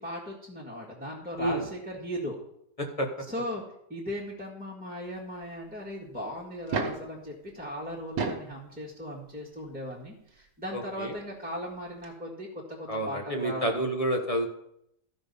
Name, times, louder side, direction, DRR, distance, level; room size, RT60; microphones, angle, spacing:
voice 1, 0.0-2.4 3.3-3.6 3.9-13.9, equal, 5° right, -5 dB, 1.7 m, -37 dB
sound 1, 6.5-7.1 8.0-8.5 9.9-10.0 11.7-11.8 12.0-12.1, right 4 dB, 85° right, 1.8 m, -31 dB
voice 2, 10.7-11.1 12.9-14.5, right 1 dB, 25° left, 3 dB, 1.0 m, -29 dB
14.0 x 5.4 x 5.5 m, 0.75 s
omnidirectional pair, 1.9 m